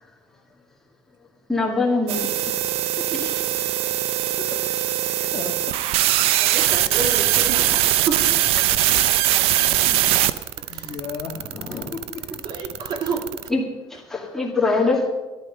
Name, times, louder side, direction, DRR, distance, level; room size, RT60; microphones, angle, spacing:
voice 1, 1.5-2.2 13.5-13.6 13.9-15.1, left 3 dB, 5° left, -2 dB, 2.2 m, -22 dB
sound 1, 2.1-13.5, right 13 dB, 75° right, 0.6 m, -21 dB
voice 2, 3.2-4.0 4.2-5.5 9.5-10.2 10.7-12.5 13.1-13.2, left 6 dB, 45° left, 2 dB, 1.6 m, -37 dB
voice 3, 6.4-8.3 10.7-10.9 12.4-13.2, right 4 dB, 45° right, 5 dB, 1.7 m, -29 dB
13.5 x 10.5 x 5.4 m, 1.2 s
cardioid pair, 145°, 10 cm